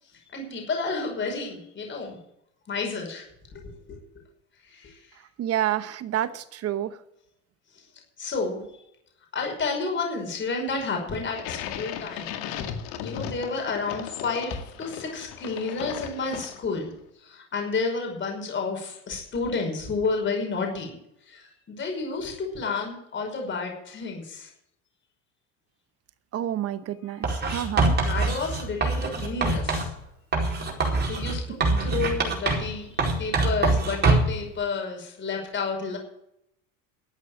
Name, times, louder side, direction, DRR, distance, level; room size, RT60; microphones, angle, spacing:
voice 1, 0.3-2.2 2.7-3.3 3.5-4.0 4.6-5.2 7.7-7.9 8.2-8.6 9.3-12.7 13.0-16.9 17.2-21.0 21.3-24.5 27.0-27.3 28.0-29.9 31.1-36.0, left 4 dB, 35° left, 5.7 m, -31 dB
voice 2, 5.4-7.0 26.3-28.0 31.7-32.1, right 11 dB, 45° right, 1.1 m, -29 dB
sound 1, 11.3-16.8, left 9 dB, 75° left, 2.1 m, -36 dB
Writing, 27.2-29.9 30.3-32.7 33.0-34.4, right 3 dB, 30° right, 4.7 m, -24 dB
13.0 x 8.4 x 8.9 m
supercardioid pair, 110°, 35 cm